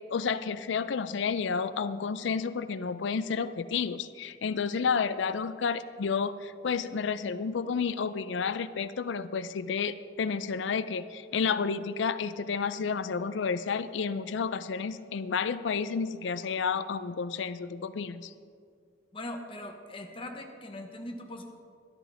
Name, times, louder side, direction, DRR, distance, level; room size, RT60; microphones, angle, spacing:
voice 1, 0.1-18.3, left 5 dB, 80° left, 14 dB, 0.4 m, -31 dB
voice 2, 19.1-21.4, left 1 dB, 30° left, 4 dB, 1.0 m, -40 dB
12.5 x 12.0 x 3.4 m, 2.2 s
head